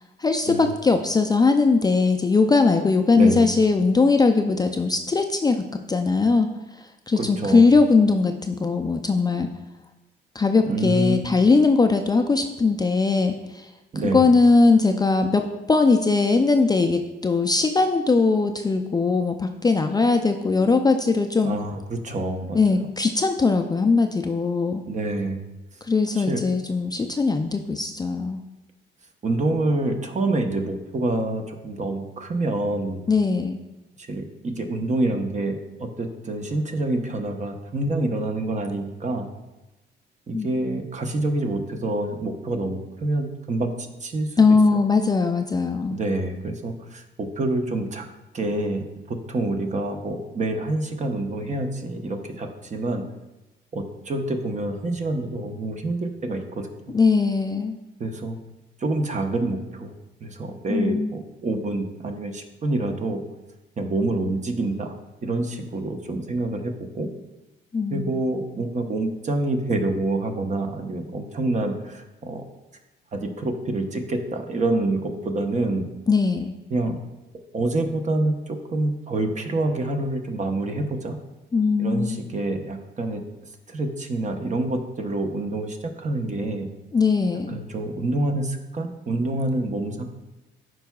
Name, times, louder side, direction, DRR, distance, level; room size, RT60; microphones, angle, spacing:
voice 1, 0.2-6.5 7.1-9.5 10.4-13.7 14.1-21.6 22.5-24.8 25.9-28.4 33.1-33.6 40.3-40.5 44.4-46.0 56.9-57.8 60.7-61.1 67.7-68.1 76.1-76.5 81.5-82.2 86.9-87.6, left 4 dB, 20° left, 5 dB, 0.4 m, -20 dB
voice 2, 3.1-3.5 7.2-7.7 10.6-11.3 13.9-14.2 21.4-22.8 24.9-25.4 26.2-26.4 29.2-33.0 34.0-39.3 40.3-44.4 45.9-48.1 48.3-53.0 53.7-56.9 58.0-58.4 58.8-59.9 60.2-63.2 63.8-64.9 65.2-67.1 67.9-72.4 73.1-75.8 76.7-77.0 77.5-81.2 81.8-83.2 83.7-86.7 87.5-90.0, right 2 dB, 35° right, 5 dB, 0.9 m, -27 dB
11.5 x 4.7 x 2.3 m, 1.0 s
cardioid pair, 90°, 20 cm